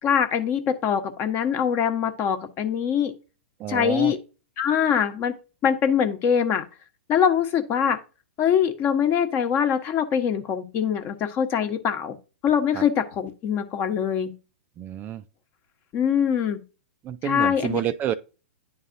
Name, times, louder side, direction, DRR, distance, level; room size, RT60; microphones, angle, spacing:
voice 1, 0.0-3.1 3.7-4.2 4.6-5.4 5.6-6.6 7.1-8.0 8.4-12.2 12.4-14.3 15.9-16.6 17.2-17.8, left 8 dB, 35° left, 1.0 m, -23 dB
voice 2, 3.6-4.1 12.7-12.8 14.8-15.2 17.0-18.1, right 11 dB, 25° right, 0.4 m, -29 dB
10.0 x 4.0 x 2.6 m
hypercardioid pair, 120°, 7 cm